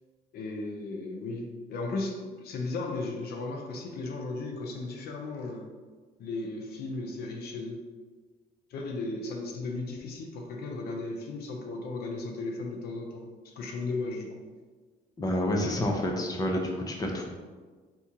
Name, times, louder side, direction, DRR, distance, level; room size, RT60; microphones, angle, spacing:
voice 1, 0.3-5.7 6.2-7.8 8.7-14.4, left 3 dB, 70° left, 2 dB, 0.7 m, -35 dB
voice 2, 15.2-17.3, left 1 dB, 20° left, 1 dB, 0.7 m, -29 dB
4.3 x 2.9 x 3.6 m, 1.4 s
cardioid pair, 110°, 17 cm